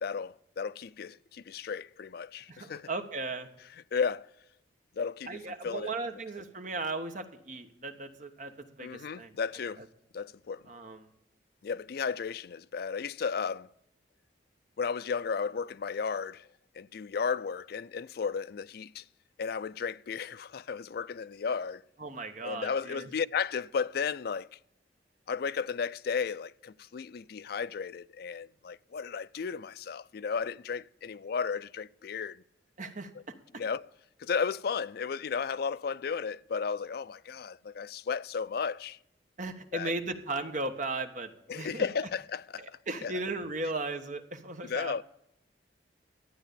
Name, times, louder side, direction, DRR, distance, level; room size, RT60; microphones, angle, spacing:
voice 1, 0.0-2.9 3.9-4.3 5.0-5.9 8.8-9.8 10.1-10.6 11.6-13.7 14.8-16.5 16.7-19.0 19.4-21.8 22.4-24.6 25.3-32.4 33.6-33.9 34.2-39.0 39.7-39.9 41.5-43.1 44.6-45.0, left 6 dB, 60° left, 0.4 m, -34 dB
voice 2, 2.5-3.5 5.3-9.4 9.8-9.9 10.7-11.0 22.0-23.1 32.8-33.1 39.4-41.9 42.6-45.0, right 2 dB, 45° right, 1.3 m, -36 dB
12.5 x 9.0 x 6.8 m
head